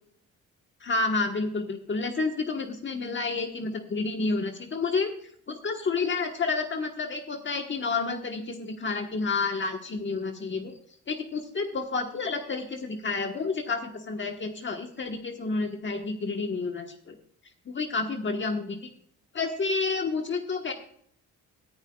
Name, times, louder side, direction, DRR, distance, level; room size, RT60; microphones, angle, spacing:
voice 1, 0.8-5.1 5.5-10.8 11.1-17.1 17.7-18.8 19.3-20.7, left 4 dB, 40° left, 4 dB, 1.3 m, -30 dB
18.0 x 10.0 x 2.3 m, 0.64 s
cardioid pair, 90°, 30 cm